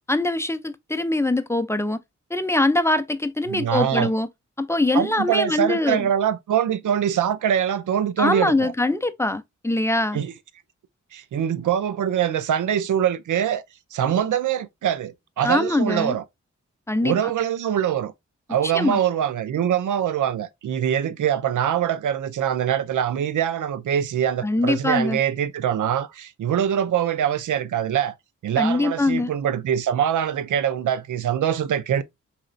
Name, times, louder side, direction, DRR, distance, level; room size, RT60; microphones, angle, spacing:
voice 1, 0.1-2.0 2.3-4.3 4.6-6.1 8.2-10.2 15.4-16.1 16.9-17.2 18.6-19.0 24.4-25.2 28.6-29.3, left 2 dB, 10° left, 0.4 m, -23 dB
voice 2, 3.5-4.1 4.9-8.7 10.1-10.3 11.1-13.6 13.9-16.2 17.0-18.1 18.5-28.1 28.4-32.0, right 9 dB, 75° right, 0.5 m, -23 dB
4.2 x 2.9 x 2.5 m
cardioid pair, 50°, 31 cm